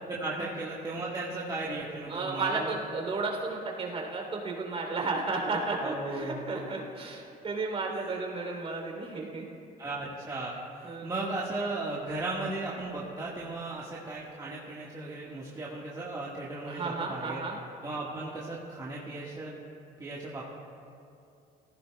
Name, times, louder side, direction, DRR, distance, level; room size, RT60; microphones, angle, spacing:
voice 1, 0.1-2.8 5.8-6.4 7.9-8.2 9.8-17.4 17.8-19.5 20.0-20.5, right 2 dB, 20° right, -6 dB, 1.5 m, -36 dB
voice 2, 2.1-9.5 10.8-11.1 16.7-17.6, right 3 dB, 35° right, 0 dB, 3.1 m, -33 dB
18.0 x 15.5 x 2.3 m, 2.6 s
cardioid pair, 110°, 17 cm